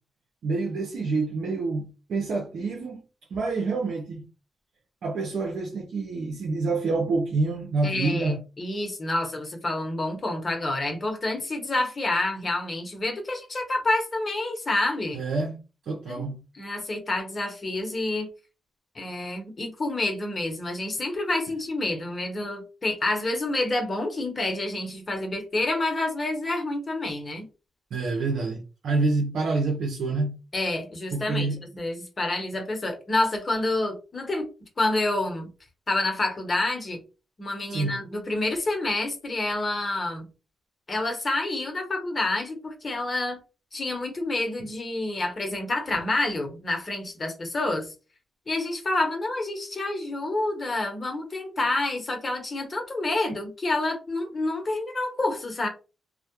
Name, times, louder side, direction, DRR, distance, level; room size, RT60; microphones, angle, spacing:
voice 1, 0.4-3.0 3.3-4.2 5.0-8.4 15.1-15.6 15.9-16.4 27.9-30.4 31.1-31.6 37.7-38.0, right 3 dB, 75° right, 0.5 m, -27 dB
voice 2, 7.8-15.2 16.1-18.3 18.9-27.4 30.5-34.5 34.8-35.5 35.9-37.0 37.4-40.2 40.9-43.4 43.7-47.9 48.5-55.7, left 2 dB, 40° left, 0.9 m, -28 dB
2.2 x 2.0 x 2.9 m
cardioid pair, 60°, 0 cm